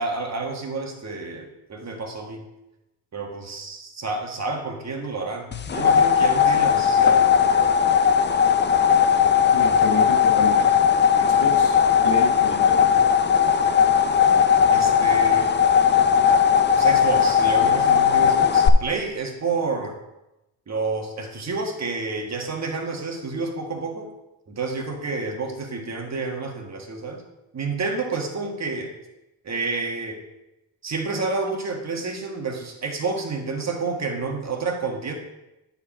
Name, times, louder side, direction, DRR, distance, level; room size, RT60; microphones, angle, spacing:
voice 1, 0.0-2.4 3.1-7.7 11.4-11.5 14.7-15.5 16.7-19.9 20.7-24.1 24.5-27.2 27.5-28.9 29.4-30.2 30.8-35.2, right 3 dB, 40° right, 2 dB, 1.5 m, -29 dB
sound 1, 5.5-18.7, left 7 dB, 25° left, 0.5 m, -18 dB
voice 2, 9.5-10.7 11.1-13.0, left 5 dB, 80° left, 3 dB, 1.5 m, -30 dB
9.8 x 4.9 x 4.3 m, 0.95 s
cardioid pair, 90°, 40 cm